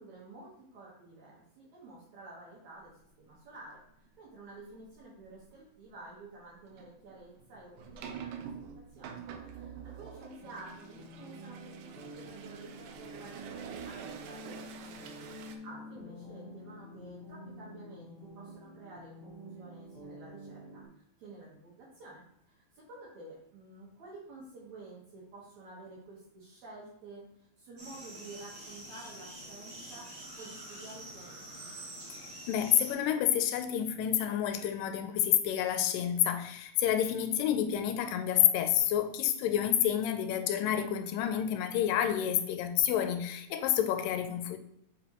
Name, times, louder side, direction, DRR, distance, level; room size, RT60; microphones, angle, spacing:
voice 1, 0.0-2.9 3.2-8.4 8.9-20.8 21.2-27.3 27.6-31.6, right 2 dB, 60° right, -5 dB, 2.4 m, -51 dB
sound 1, 4.7-4.9 5.3-5.6 6.7-15.6, right 7 dB, 80° right, 2.1 m, -46 dB
sound 2, 10.4-20.8, equal, 5° left, 1.6 m, -48 dB
sound 3, 27.8-32.9, right 1 dB, 40° right, 2.8 m, -46 dB
voice 2, 32.1-44.6, left 10 dB, 80° left, 9 dB, 2.2 m, -29 dB
6.9 x 5.0 x 2.9 m, 0.75 s
omnidirectional pair, 4.1 m